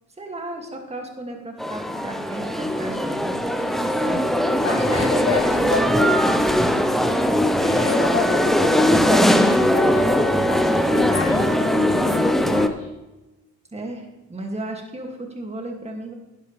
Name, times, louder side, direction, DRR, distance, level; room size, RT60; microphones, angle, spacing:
voice 1, 0.2-6.9 13.7-16.1, right 1 dB, 20° right, 2 dB, 2.2 m, -34 dB
sound 1, 1.6-12.7, equal, ahead, 0.7 m, -20 dB
voice 2, 4.4-6.2 7.6-12.9, left 4 dB, 50° left, -2 dB, 2.0 m, -29 dB
11.0 x 10.5 x 3.3 m, 1.1 s
cardioid pair, 90°, 30 cm